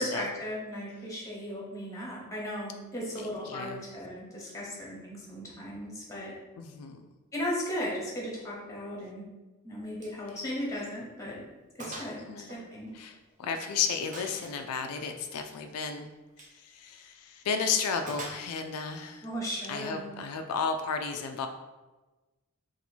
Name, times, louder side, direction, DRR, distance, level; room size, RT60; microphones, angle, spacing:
voice 1, 0.0-6.3 7.3-9.3 9.6-11.4 11.8-12.2 12.5-12.9 19.2-20.1, equal, 15° left, -4 dB, 0.9 m, -36 dB
voice 2, 3.2-3.8 6.6-7.0 10.3-10.4 12.2-12.6 12.9-16.1 16.5-19.3 19.7-21.5, left 5 dB, 85° left, 6 dB, 0.3 m, -33 dB
Gunshot gunfire, 10.0-10.2 10.5-10.7 11.1-11.2 11.8-12.2 12.5-13.5 14.1-14.6 16.3-16.6 18.1-18.8, right 2 dB, 35° right, 0.5 m, -44 dB
2.8 x 2.5 x 4.2 m, 1.2 s
head